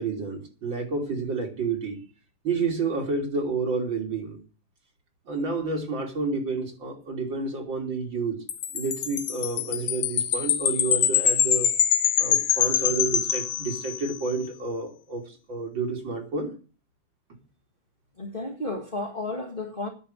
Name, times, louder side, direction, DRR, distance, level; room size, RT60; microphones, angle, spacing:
voice 1, 0.0-2.0 2.4-4.4 5.3-8.4 8.7-11.7 12.2-16.5, right 4 dB, 60° right, 3.9 m, -30 dB
Wind chime, 8.5-14.2, left 9 dB, 85° left, 2.0 m, -24 dB
voice 2, 18.2-19.9, left 2 dB, 25° left, 1.8 m, -32 dB
10.0 x 7.3 x 8.8 m
omnidirectional pair, 2.4 m